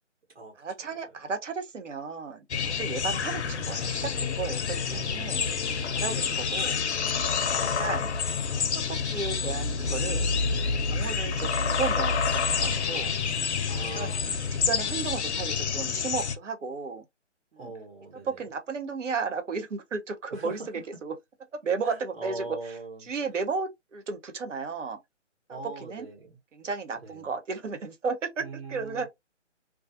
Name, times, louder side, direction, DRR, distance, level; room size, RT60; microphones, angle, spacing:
voice 1, 0.6-5.4 5.9-6.8 7.8-8.1 8.5-10.3 10.8-13.1 13.9-14.2 14.6-17.0 17.5-17.7 18.2-20.6 21.0-21.1 21.5-22.5 23.0-25.0 25.8-26.1 26.5-29.1, right 5 dB, 80° right, 0.8 m, -34 dB
sound 1, 2.5-16.4, left 5 dB, 65° left, 0.5 m, -28 dB
voice 2, 4.9-6.3 7.4-8.0 10.5-11.2 13.7-14.3 17.6-18.4 20.3-20.7 21.8-23.1 25.5-26.4 27.0-27.3 28.4-29.1, right 3 dB, 55° right, 1.0 m, -42 dB
2.3 x 2.3 x 2.5 m
hypercardioid pair, 165°, 36 cm